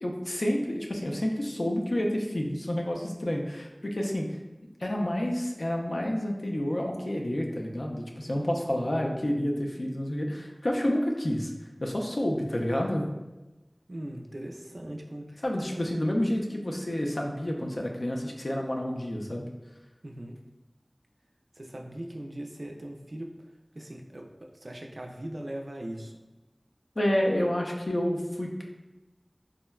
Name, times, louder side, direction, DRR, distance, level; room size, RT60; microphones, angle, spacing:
voice 1, 0.0-4.3 4.8-11.5 11.8-13.1 15.4-19.5 27.0-28.6, left 1 dB, 75° left, 0 dB, 0.4 m, -29 dB
voice 2, 13.9-15.4 15.7-15.9 20.0-20.4 21.6-23.3 23.8-24.3 24.6-26.1, right 1 dB, 70° right, 1 dB, 0.3 m, -39 dB
3.5 x 2.1 x 2.2 m, 1.1 s
wide cardioid pair, 40°, 0 cm